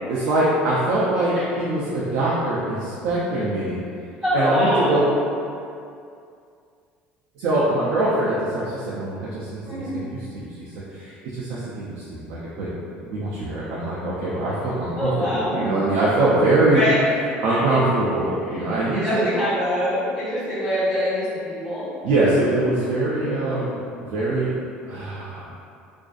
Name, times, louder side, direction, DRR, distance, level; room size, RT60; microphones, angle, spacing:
voice 1, 0.1-3.8 4.3-5.0 7.4-9.6 9.9-10.5 10.9-12.7 13.1-16.8 17.4-19.3 22.0-24.5 24.9-25.5, right 2 dB, 75° right, -7 dB, 0.4 m, -23 dB
voice 2, 4.2-5.0 9.6-10.0 15.0-15.6 16.7-17.0 18.5-18.6 18.9-21.8, left 1 dB, 5° right, -16 dB, 1.3 m, -24 dB
2.5 x 2.3 x 2.3 m, 2.4 s
cardioid pair, 150°, 4 cm